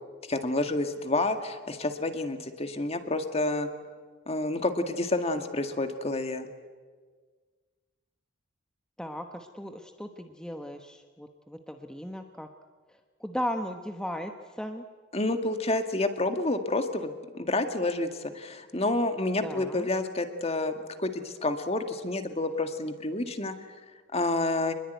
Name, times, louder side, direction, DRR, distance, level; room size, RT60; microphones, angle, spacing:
voice 1, 0.3-3.7 4.3-6.5 15.1-23.5 24.1-24.7, left 2 dB, 30° left, 7 dB, 2.0 m, -29 dB
voice 2, 9.0-12.5 12.9-14.9 19.4-19.9, equal, 5° left, 5 dB, 1.1 m, -37 dB
27.0 x 21.0 x 9.3 m, 1.5 s
head